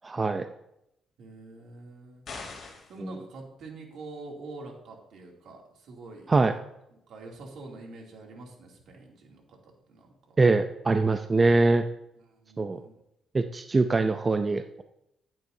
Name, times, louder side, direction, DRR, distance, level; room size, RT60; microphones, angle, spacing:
voice 1, 0.0-0.5 3.0-3.1 6.3-6.5 10.4-11.9 12.6-12.8 13.3-14.8, right 3 dB, 30° right, 8 dB, 0.5 m, -23 dB
voice 2, 1.2-2.3 2.9-6.4 7.1-10.1 11.4-11.5 12.1-12.9, right 2 dB, 70° right, 0 dB, 2.6 m, -45 dB
sound 1, 2.3-3.0, left 4 dB, 50° left, 3.0 m, -41 dB
15.0 x 9.1 x 2.7 m, 0.81 s
cardioid pair, 90°, 0 cm